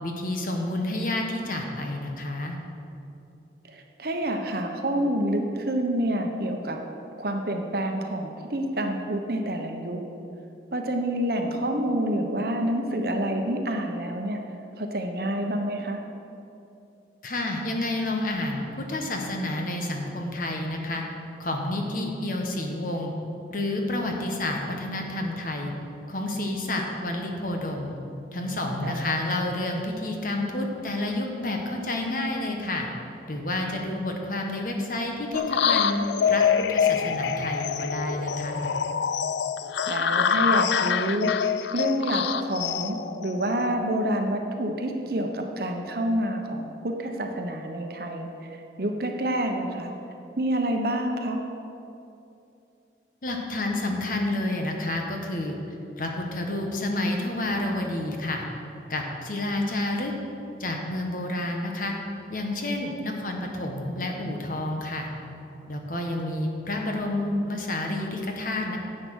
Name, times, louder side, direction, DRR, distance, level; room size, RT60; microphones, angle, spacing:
voice 1, 0.0-2.6 17.2-21.0 21.4-23.1 23.5-25.7 26.1-27.9 28.3-32.9 33.3-36.0 36.3-38.7 53.2-55.5 56.0-58.4 58.9-60.1 60.6-61.9 62.3-65.1 65.7-68.8, left 1 dB, 50° left, 2 dB, 1.3 m, -29 dB
voice 2, 3.6-6.8 7.2-10.0 10.7-14.4 14.8-16.0 28.8-29.4 39.9-41.3 41.7-49.9 50.4-51.4, right 1 dB, 55° right, 3 dB, 1.0 m, -28 dB
sound 1, 35.3-43.7, left 7 dB, 75° left, 0.4 m, -25 dB
10.0 x 7.9 x 6.4 m, 2.8 s
head